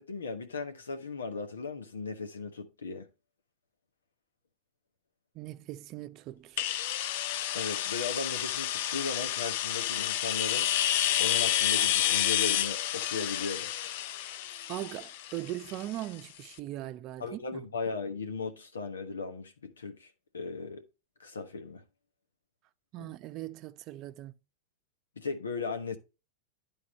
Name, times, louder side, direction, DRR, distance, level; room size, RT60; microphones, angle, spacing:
voice 1, 0.0-3.1 7.5-10.7 11.2-13.7 17.2-20.8 21.2-21.8 23.0-23.1 25.2-26.0, left 4 dB, 85° left, 1.1 m, -37 dB
voice 2, 5.3-6.7 14.7-17.7 22.9-24.4, right 15 dB, 45° right, 0.6 m, -40 dB
sound 1, 6.6-16.2, left 12 dB, 60° left, 0.4 m, -30 dB
11.0 x 3.9 x 3.8 m
hypercardioid pair, 95°, 0 cm